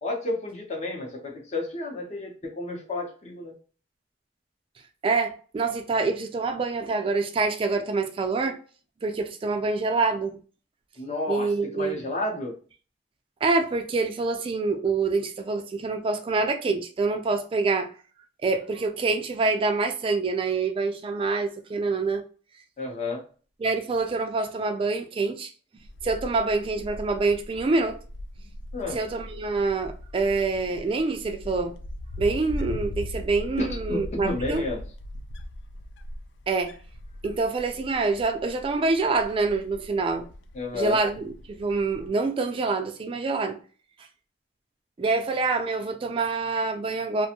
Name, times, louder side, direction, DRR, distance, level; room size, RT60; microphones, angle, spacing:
voice 1, 0.0-3.5 11.0-12.5 22.8-23.2 28.7-29.0 33.6-34.8 40.5-41.0, left 2 dB, 40° left, 0.8 m, -31 dB
voice 2, 5.0-8.6 9.0-10.4 11.3-12.0 13.4-17.9 18.4-22.2 23.6-25.5 26.0-28.0 28.9-31.7 32.2-34.6 36.5-36.8 37.2-40.3 40.7-43.6 45.0-47.3, right 3 dB, 30° right, 0.3 m, -26 dB
Wind, 25.8-42.1, left 1 dB, 80° left, 0.3 m, -39 dB
2.5 x 2.3 x 2.8 m
head